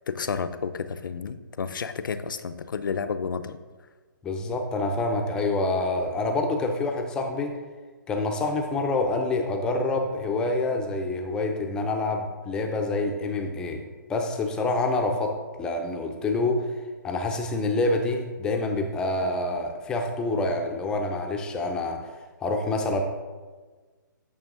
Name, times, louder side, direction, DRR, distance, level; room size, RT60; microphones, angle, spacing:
voice 1, 0.1-3.6, left 5 dB, 75° left, 12 dB, 0.6 m, -31 dB
voice 2, 4.2-7.5 8.1-13.8 14.1-16.7 17.0-22.1 22.4-23.0, left 2 dB, 5° left, 3 dB, 0.5 m, -27 dB
8.9 x 6.2 x 3.7 m, 1.4 s
hypercardioid pair, 160°, 11 cm